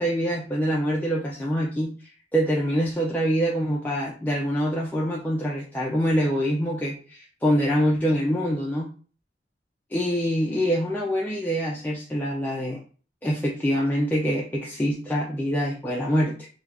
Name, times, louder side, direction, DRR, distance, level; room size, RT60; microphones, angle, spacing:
voice 1, 0.0-8.9 9.9-12.8 13.2-16.5, equal, 10° left, -3 dB, 0.3 m, -25 dB
2.4 x 2.3 x 3.2 m, 0.40 s
head